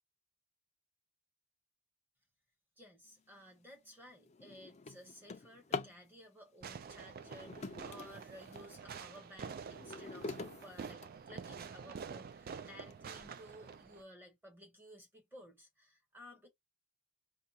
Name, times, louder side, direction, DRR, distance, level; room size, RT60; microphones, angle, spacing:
voice 1, 2.8-10.4 10.6-16.5, equal, 10° right, 0.9 m, -56 dB
Drawer open or close, 3.4-3.6 4.1-6.0 7.1-8.7 9.2-11.7 12.3-12.4 12.9-13.0 13.4-13.7, left 4 dB, 30° left, 0.4 m, -45 dB
Fireworks, 6.6-14.0, right 6 dB, 45° right, 0.3 m, -48 dB
5.2 x 2.3 x 2.8 m
head